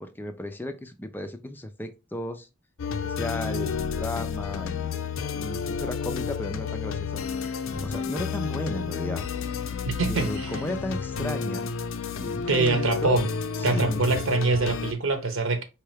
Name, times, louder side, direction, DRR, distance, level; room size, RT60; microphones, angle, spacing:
voice 1, 0.0-2.5 2.9-4.9 5.3-9.2 10.1-11.7 12.2-13.2 13.6-14.0, left 1 dB, 10° left, 0.4 m, -35 dB
sound 1, 2.8-14.9, left 5 dB, 70° left, 0.5 m, -31 dB
voice 2, 9.9-10.5 12.5-13.3 13.6-15.6, right 3 dB, 65° right, 1.0 m, -24 dB
4.4 x 3.3 x 3.4 m
head